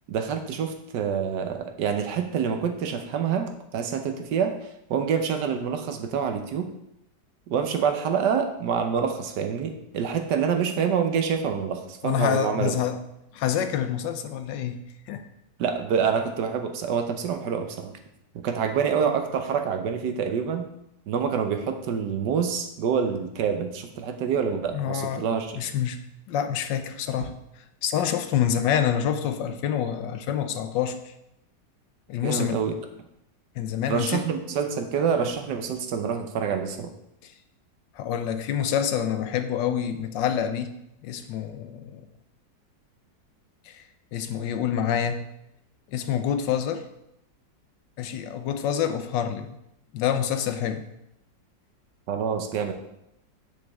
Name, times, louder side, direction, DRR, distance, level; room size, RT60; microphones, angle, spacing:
voice 1, 0.1-6.7 7.5-12.7 15.6-17.9 18.3-20.7 21.1-25.7 32.2-32.7 33.9-36.9 52.1-52.7, right 7 dB, 70° right, 6 dB, 1.3 m, -27 dB
voice 2, 12.0-13.0 13.3-14.8 15.1-15.3 24.7-25.3 25.6-26.0 26.3-27.4 27.8-31.0 32.1-32.6 33.6-34.3 38.0-40.7 41.0-42.1 43.7-43.8 44.1-45.2 45.9-46.9 48.0-49.5 49.9-50.8, left 9 dB, 85° left, 9 dB, 1.3 m, -27 dB
9.6 x 5.2 x 3.5 m, 0.82 s
omnidirectional pair, 2.0 m